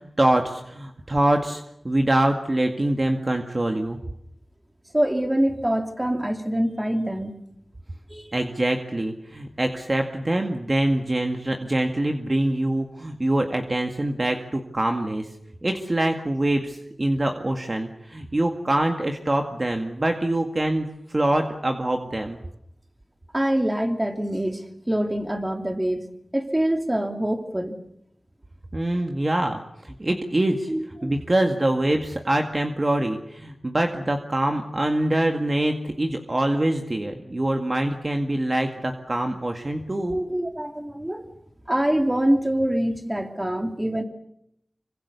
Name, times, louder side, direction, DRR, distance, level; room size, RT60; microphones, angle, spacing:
voice 1, 0.0-4.0 8.3-15.3 15.6-22.4 28.7-29.6 29.8-30.7 31.0-40.2, right 1 dB, 35° right, 4 dB, 2.0 m, -24 dB
voice 2, 4.9-7.3 8.1-8.3 23.3-26.1 26.3-27.8 30.7-31.1 40.0-41.2 41.7-44.0, right 1 dB, 15° right, 5 dB, 3.0 m, -25 dB
26.5 x 24.5 x 7.0 m, 0.76 s
wide cardioid pair, 80°, 0 cm